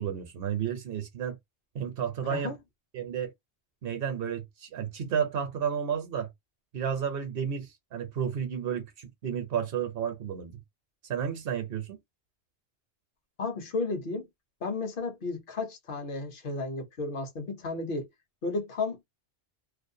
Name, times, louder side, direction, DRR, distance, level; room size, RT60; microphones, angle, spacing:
voice 1, 0.0-1.4 1.7-2.5 2.9-3.3 3.8-6.3 6.7-10.6 11.1-12.0, right 8 dB, 65° right, 0.8 m, -32 dB
voice 2, 2.2-2.6 13.4-14.3 14.6-18.0 18.4-19.0, left 3 dB, 60° left, 0.8 m, -33 dB
2.5 x 2.1 x 2.6 m
omnidirectional pair, 1.1 m